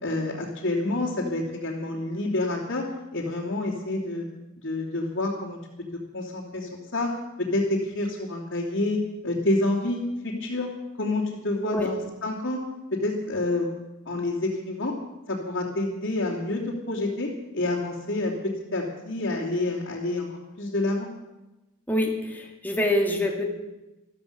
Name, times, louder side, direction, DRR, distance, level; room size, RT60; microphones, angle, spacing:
voice 1, 0.0-2.8 3.1-4.3 4.6-5.6 6.1-7.1 7.5-10.7 11.0-12.6 13.0-13.7 14.0-14.9 15.3-17.3 17.5-18.3 18.7-21.1, left 2 dB, 60° left, -5 dB, 3.1 m, -28 dB
voice 2, 21.9-23.4, left 1 dB, 10° left, 1 dB, 2.3 m, -26 dB
14.5 x 13.5 x 6.8 m, 1.0 s
head